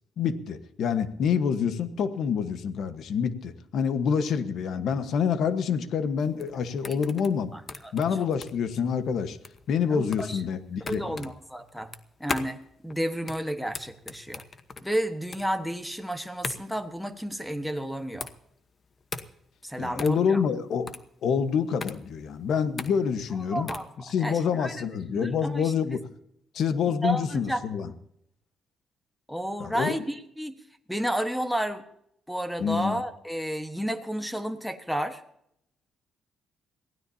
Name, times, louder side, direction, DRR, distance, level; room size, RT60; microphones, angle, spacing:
voice 1, 0.2-7.5 7.9-9.4 9.7-11.3 19.8-20.9 21.2-23.7 24.1-26.1 26.5-27.9 29.6-30.0 32.6-33.0, left 6 dB, 70° left, 11 dB, 1.2 m, -27 dB
sound 1, 6.2-24.0, left 4 dB, 40° left, 1.1 m, -40 dB
voice 2, 7.5-7.9 8.2-8.3 9.9-10.4 10.8-11.9 12.2-14.4 14.8-18.3 19.6-20.4 23.5-23.9 24.2-24.9 25.1-25.7 27.0-27.6 29.3-30.6 30.9-31.8 32.3-35.2, equal, ahead, 9 dB, 1.3 m, -31 dB
22.5 x 16.0 x 2.8 m, 0.75 s
cardioid pair, 90°, 0 cm